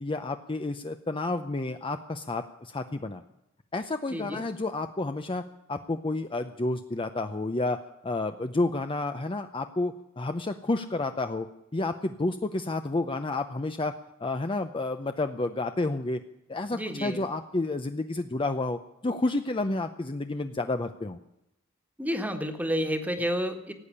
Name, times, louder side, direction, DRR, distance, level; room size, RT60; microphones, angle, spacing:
voice 1, 0.0-3.2 3.7-5.4 5.7-7.8 8.0-11.5 11.7-13.9 14.2-16.2 16.5-21.2, left 2 dB, 25° left, 8 dB, 0.6 m, -30 dB
voice 2, 4.1-4.4 16.7-17.2 22.0-23.7, equal, 5° right, 6 dB, 1.5 m, -30 dB
17.5 x 8.5 x 9.8 m, 0.87 s
head